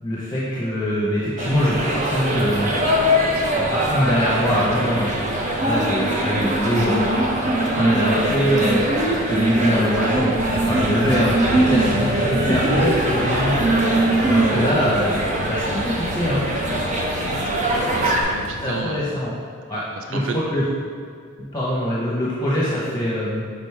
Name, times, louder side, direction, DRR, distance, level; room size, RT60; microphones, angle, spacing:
voice 1, 0.0-2.7 3.6-5.1 5.6-7.1 7.7-8.9 9.3-13.5 13.8-13.9 14.3-15.1 15.5-16.4 18.6-19.3 19.7-19.8 20.1-20.6 21.4-23.4, equal, 20° left, -7 dB, 0.9 m, -23 dB
sound 1, 1.4-18.2, right 1 dB, 35° right, 0.8 m, -22 dB
sound 2, 10.4-18.8, left 4 dB, 65° left, 0.3 m, -33 dB
voice 2, 10.6-11.1 17.4-19.2 20.0-20.4, right 4 dB, 65° right, 3 dB, 0.4 m, -33 dB
5.2 x 5.1 x 4.7 m, 2.1 s
head